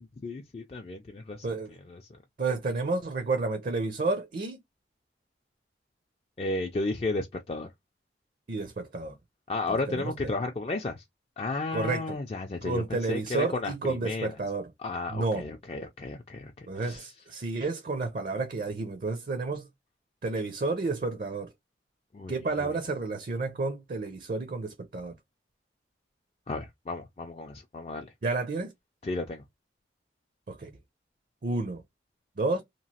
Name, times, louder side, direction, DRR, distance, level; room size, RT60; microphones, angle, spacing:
voice 1, 0.2-1.4 1.9-2.0 6.4-7.7 9.5-11.0 11.4-12.8 13.1-14.3 14.8-17.1 22.1-22.3 22.6-22.7 26.5-28.1 29.0-29.4, left 2 dB, 35° left, 0.3 m, -33 dB
voice 2, 1.4-1.8 2.4-4.6 8.5-9.2 9.7-10.3 11.7-12.2 12.6-14.7 15.1-15.5 16.7-19.7 20.2-21.5 22.3-25.1 28.2-28.7 30.5-30.7 31.4-31.8 32.4-32.6, right 3 dB, 50° right, 0.5 m, -31 dB
2.9 x 2.3 x 2.7 m
head